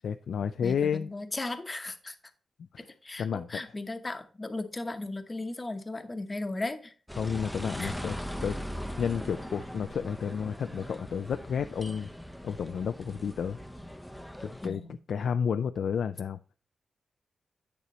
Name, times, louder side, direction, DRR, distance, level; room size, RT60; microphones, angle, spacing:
voice 1, 0.0-1.1 3.2-3.6 7.2-8.2 8.4-8.6 9.0-12.1 12.4-13.6 14.4-14.8 15.1-16.6, left 7 dB, 80° left, 11 dB, 0.3 m, -31 dB
voice 2, 0.6-2.2 2.8-6.9 7.8-8.0 14.6-15.0, left 2 dB, 25° left, 9 dB, 0.9 m, -36 dB
on market, 7.1-14.7, equal, ahead, 0.6 m, -40 dB
8.7 x 6.7 x 3.0 m, 0.39 s
wide cardioid pair, 125°, 0 cm